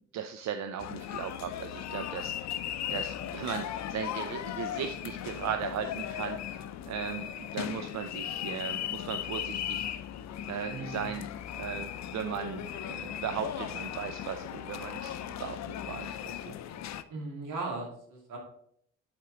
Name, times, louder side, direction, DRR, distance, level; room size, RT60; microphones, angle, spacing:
voice 1, 0.1-2.6 2.9-6.6 6.9-9.9 10.5-16.5, right 8 dB, 65° right, 7 dB, 0.6 m, -37 dB
sound 1, 0.8-17.0, left 10 dB, 65° left, 0.5 m, -37 dB
voice 2, 10.7-11.1 17.1-18.4, right 3 dB, 85° right, -1 dB, 2.5 m, -38 dB
8.3 x 4.5 x 3.9 m, 0.69 s
cardioid pair, 90°, 30 cm